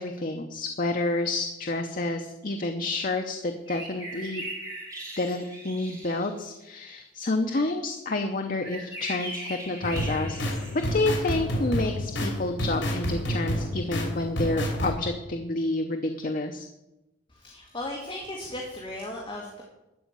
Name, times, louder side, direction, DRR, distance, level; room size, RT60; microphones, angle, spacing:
voice 1, 0.0-4.4 5.2-10.4 10.7-16.7, left 2 dB, 45° left, 5 dB, 0.7 m, -29 dB
sound 1, 3.7-6.4 8.6-11.2, right 1 dB, 15° right, 2.6 m, -39 dB
sound 2, 9.8-14.9, equal, 70° left, 3.1 m, -29 dB
voice 2, 17.3-19.6, left 1 dB, 25° left, -1 dB, 1.6 m, -36 dB
12.5 x 5.0 x 8.8 m, 0.98 s
head